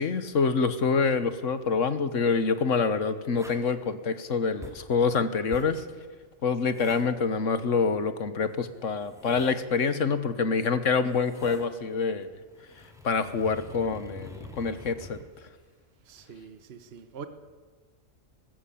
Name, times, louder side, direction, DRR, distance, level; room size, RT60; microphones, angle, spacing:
voice 1, 0.0-5.8 6.4-12.3 13.0-15.2, left 5 dB, 70° left, 12 dB, 1.6 m, -26 dB
sound 1, 3.3-3.7 4.6-4.9 5.5-5.8 6.7-7.1 8.6-9.6 10.9-11.7 12.2-15.2 16.2-16.4, left 1 dB, ahead, 2.5 m, -45 dB
voice 2, 16.1-17.3, right 6 dB, 50° right, 9 dB, 1.4 m, -44 dB
19.5 x 15.5 x 8.7 m, 1.4 s
omnidirectional pair, 1.4 m